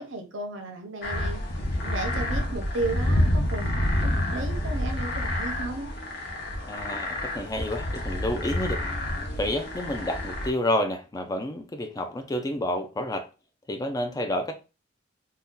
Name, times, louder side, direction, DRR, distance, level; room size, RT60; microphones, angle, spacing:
voice 1, 0.0-1.4 1.8-5.9, right 2 dB, 65° right, 0.7 m, -34 dB
sound 1, 1.0-10.5, left 1 dB, 50° left, 0.7 m, -28 dB
voice 2, 6.7-8.8 9.4-13.3 13.7-14.5, left 1 dB, 20° left, 0.3 m, -29 dB
2.7 x 2.2 x 3.5 m
head